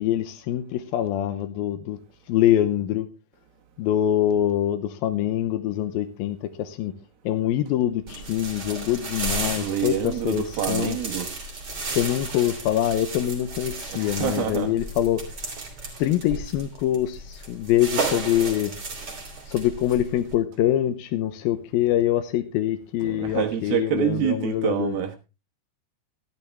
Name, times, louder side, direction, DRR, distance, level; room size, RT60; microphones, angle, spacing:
voice 1, 0.0-2.0 2.3-3.1 3.8-6.9 7.3-11.0 12.0-15.2 16.0-18.7 19.5-25.0, left 12 dB, 75° left, 2.4 m, -24 dB
sound 1, 8.1-20.4, right 3 dB, 30° right, 3.4 m, -34 dB
voice 2, 9.5-11.3 13.9-14.7 23.0-25.2, right 10 dB, 70° right, 2.8 m, -27 dB
13.0 x 12.5 x 3.4 m
omnidirectional pair, 4.9 m